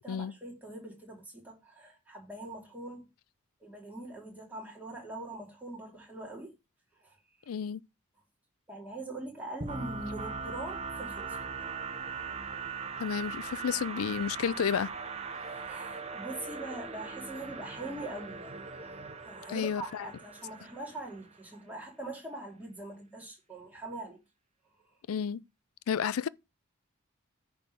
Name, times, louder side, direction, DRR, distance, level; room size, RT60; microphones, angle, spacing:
voice 1, 0.0-3.1 3.6-6.5 7.0-7.2 8.7-11.4 13.7-13.8 15.4-24.2, right 2 dB, 10° right, 2.7 m, -43 dB
voice 2, 7.5-7.8 13.0-14.9 19.5-20.1 25.1-25.4 25.9-26.3, left 7 dB, 85° left, 0.4 m, -31 dB
sound 1, 9.6-21.4, right 5 dB, 30° right, 0.8 m, -40 dB
9.8 x 3.7 x 6.2 m
head